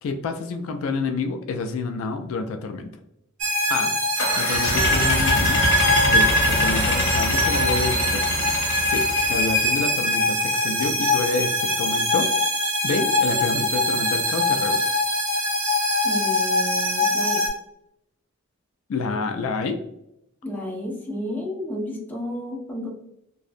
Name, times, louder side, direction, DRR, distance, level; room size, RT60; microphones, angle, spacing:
voice 1, 0.0-2.9 3.7-3.9 4.4-5.6 6.1-8.2 8.9-11.5 11.8-12.3 12.8-14.9 18.9-19.8, left 3 dB, 75° left, 7 dB, 0.3 m, -28 dB
sound 1, 3.4-17.5, left 1 dB, 70° right, 0.8 m, -22 dB
sound 2, 4.2-9.7, left 2 dB, 55° left, 0.7 m, -25 dB
voice 2, 16.0-17.5 20.4-22.9, equal, 10° left, -2 dB, 0.5 m, -31 dB
2.5 x 2.0 x 2.5 m, 0.80 s
head